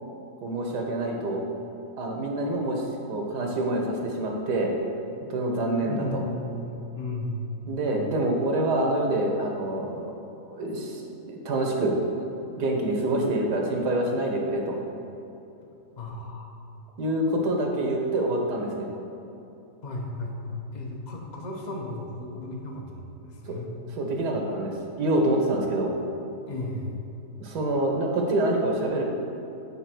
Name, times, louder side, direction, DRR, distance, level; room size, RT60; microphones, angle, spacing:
voice 1, 0.4-1.4 2.0-2.8 3.1-4.7 5.3-6.2 7.7-10.1 10.4-11.9 12.6-14.8 17.0-18.9 23.5-23.6 24.0-26.0 27.4-29.0, right 1 dB, 80° right, 1 dB, 1.6 m, -26 dB
voice 2, 5.8-7.6 16.0-16.5 19.8-23.7 26.5-27.0, left 1 dB, 35° left, 0 dB, 0.7 m, -35 dB
9.0 x 3.6 x 6.0 m, 2.9 s
omnidirectional pair, 1.8 m